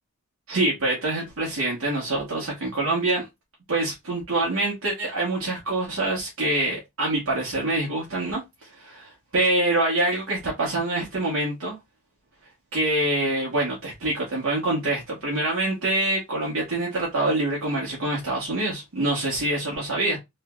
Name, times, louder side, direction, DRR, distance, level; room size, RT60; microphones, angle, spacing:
voice 1, 0.5-3.3 3.7-8.4 8.7-11.8 12.7-20.2, right 2 dB, 65° right, 1.2 m, -25 dB
3.1 x 3.0 x 2.2 m
head